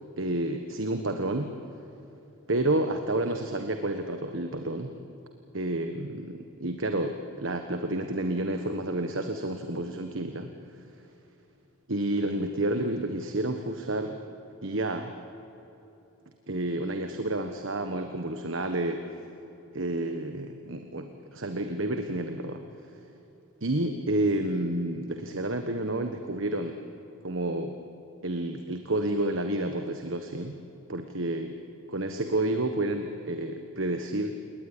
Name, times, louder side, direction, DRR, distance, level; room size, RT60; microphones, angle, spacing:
voice 1, 0.2-1.5 2.5-4.9 5.5-10.5 11.9-14.2 14.6-15.1 16.5-19.0 19.7-22.6 23.6-26.8 27.2-27.7 28.2-30.6 30.9-31.5 31.9-34.4, right 1 dB, 65° right, 6 dB, 1.4 m, -30 dB
29.0 x 19.0 x 10.0 m, 2.9 s
head